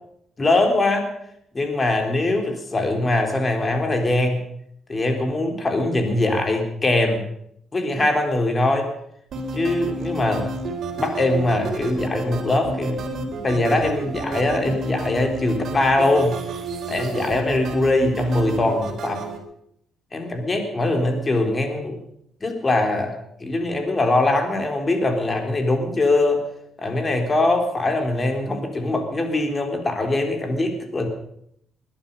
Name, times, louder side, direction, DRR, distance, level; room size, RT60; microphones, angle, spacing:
voice 1, 0.4-1.1 1.5-4.4 4.9-7.2 7.7-8.9 9.5-10.4 11.0-13.0 13.4-16.3 16.9-19.2 20.1-22.0 22.4-23.1 23.4-26.4 26.8-31.1, left 2 dB, 30° left, 4 dB, 3.8 m, -22 dB
sound 1, 9.3-19.4, right 2 dB, 60° right, 4.0 m, -30 dB
21.5 x 11.5 x 5.5 m, 0.73 s
cardioid pair, 90°, 0 cm